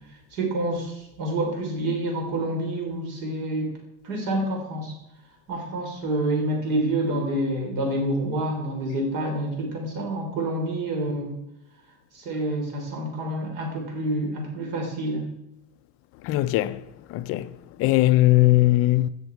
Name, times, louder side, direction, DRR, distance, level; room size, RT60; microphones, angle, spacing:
voice 1, 0.3-3.7 4.0-4.9 5.5-11.4 12.1-15.3, right 1 dB, 65° right, 3.7 m, -28 dB
voice 2, 16.2-16.8 17.1-17.5 17.8-19.1, left 16 dB, 40° left, 0.4 m, -19 dB
16.5 x 6.5 x 4.5 m
cardioid pair, 175°, 36 cm